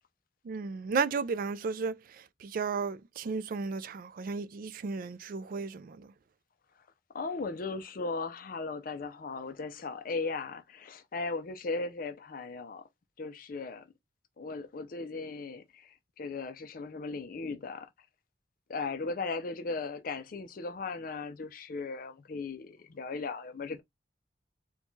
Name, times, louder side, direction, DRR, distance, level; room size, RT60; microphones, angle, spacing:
voice 1, 0.4-6.1, right 4 dB, 50° right, 0.3 m, -34 dB
voice 2, 7.1-12.8 13.2-13.9 14.4-17.9 18.7-23.8, left 3 dB, 50° left, 0.5 m, -37 dB
4.5 x 2.2 x 2.7 m
head